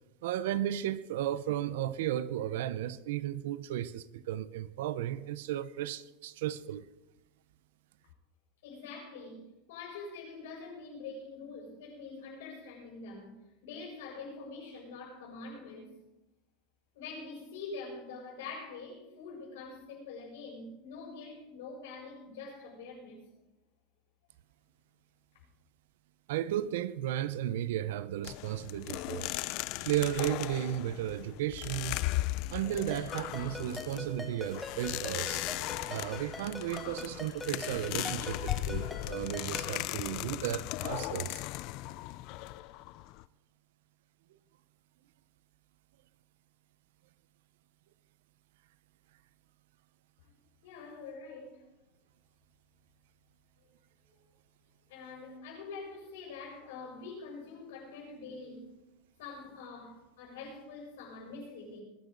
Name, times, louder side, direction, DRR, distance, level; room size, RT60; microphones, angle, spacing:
voice 1, 0.2-6.9 26.3-29.3 29.8-32.0 32.5-35.4 35.9-41.4, right 12 dB, 80° right, 0.7 m, -34 dB
voice 2, 8.6-13.3 13.6-16.0 16.9-23.2 50.6-51.6 54.9-58.7 59.2-61.8, left 4 dB, 85° left, 6.9 m, -45 dB
sound 1, 28.2-43.2, left 18 dB, 50° left, 0.4 m, -37 dB
Ringtone, 32.9-39.8, left 1 dB, 5° left, 1.2 m, -44 dB
20.5 x 11.5 x 4.0 m
supercardioid pair, 165°, 0 cm